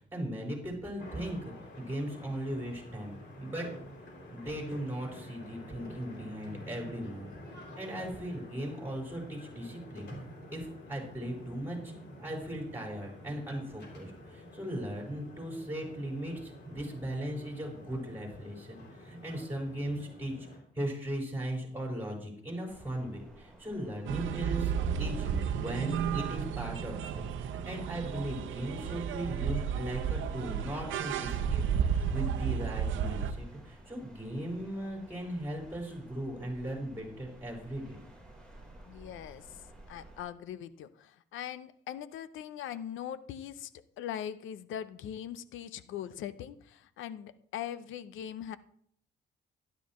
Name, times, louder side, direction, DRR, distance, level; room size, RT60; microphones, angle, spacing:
voice 1, 0.0-3.7 4.3-7.3 7.7-10.1 10.5-11.9 12.2-20.3 20.7-24.7 25.0-38.0, right 1 dB, 10° right, 0 dB, 5.1 m, -38 dB
sound 1, 1.0-20.6, left 1 dB, 60° left, 3.6 m, -49 dB
sound 2, 22.7-40.2, right 1 dB, 5° left, 4.0 m, -55 dB
sound 3, 24.1-33.3, right 7 dB, 80° right, 0.8 m, -32 dB
voice 2, 38.8-43.7 44.0-48.6, left 10 dB, 80° left, 15 dB, 0.6 m, -41 dB
12.5 x 11.5 x 3.1 m, 0.65 s
cardioid pair, 90°, 20 cm